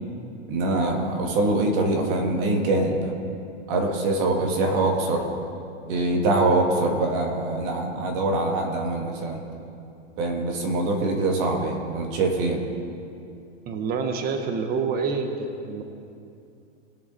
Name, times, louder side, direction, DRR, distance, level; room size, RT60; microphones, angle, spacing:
voice 1, 0.5-3.1 3.7-5.2 5.9-9.4 10.2-12.6, right 2 dB, 50° right, 1 dB, 2.4 m, -24 dB
voice 2, 13.7-15.8, right 5 dB, 25° right, 6 dB, 1.1 m, -27 dB
21.0 x 7.1 x 4.3 m, 2.6 s
hypercardioid pair, 130°, 34 cm